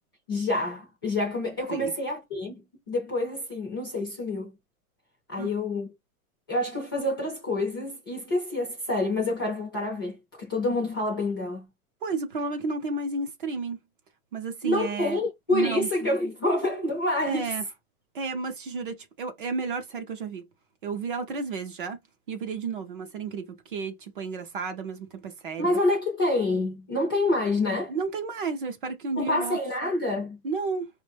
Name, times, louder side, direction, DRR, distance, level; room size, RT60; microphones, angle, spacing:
voice 1, 0.3-4.5 5.3-5.9 6.5-11.6 14.6-17.5 25.6-27.9 29.2-30.4, left 2 dB, 15° left, 0.4 m, -27 dB
voice 2, 12.0-13.8 14.3-15.2 15.5-15.9 17.3-17.6 18.1-20.4 20.8-22.0 22.3-25.7 27.9-29.6 30.4-30.9, right 4 dB, 40° right, 0.5 m, -32 dB
5.1 x 2.1 x 3.2 m
supercardioid pair, 170°, 44 cm